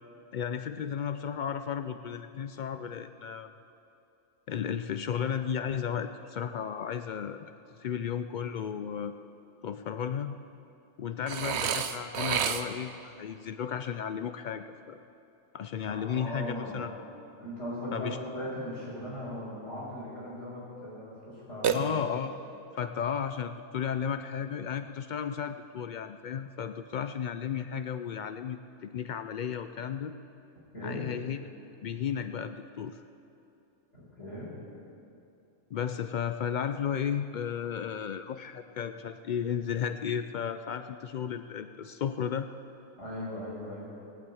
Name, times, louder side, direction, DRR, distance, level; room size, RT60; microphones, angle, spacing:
voice 1, 0.3-3.5 4.5-7.5 7.8-9.1 9.6-10.3 11.0-15.0 15.5-16.9 17.9-18.2 21.7-22.4 22.7-30.1 30.8-31.4 31.8-33.0 35.7-42.5, left 8 dB, 90° left, 10 dB, 0.4 m, -34 dB
Burping eructation, 11.3-13.0 21.6-22.4, right 7 dB, 60° right, 0.9 m, -30 dB
voice 2, 15.9-16.8 17.4-21.9 30.7-31.1 33.9-34.5 43.0-43.9, equal, 55° left, -10 dB, 4.9 m, -38 dB
18.5 x 8.3 x 8.5 m, 2.7 s
omnidirectional pair, 1.3 m